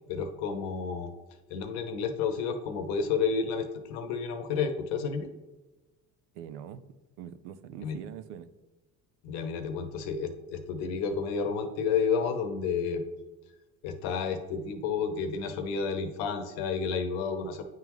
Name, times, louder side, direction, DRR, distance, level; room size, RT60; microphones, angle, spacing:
voice 1, 0.1-1.1 1.5-5.3 7.8-8.0 9.2-13.1 13.8-17.6, left 5 dB, 75° left, 7 dB, 0.9 m, -31 dB
voice 2, 6.3-8.5, right 9 dB, 75° right, 12 dB, 0.6 m, -43 dB
9.1 x 3.6 x 3.1 m, 1.1 s
hypercardioid pair, 70°, 37 cm